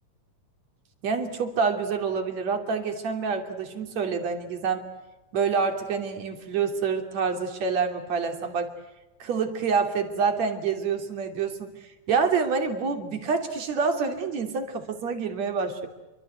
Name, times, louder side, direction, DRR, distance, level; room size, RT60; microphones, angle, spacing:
voice 1, 1.0-4.9 5.3-8.7 9.2-11.8 12.1-15.9, right 5 dB, 55° right, 5 dB, 4.1 m, -27 dB
28.5 x 25.0 x 8.1 m, 1.1 s
omnidirectional pair, 3.8 m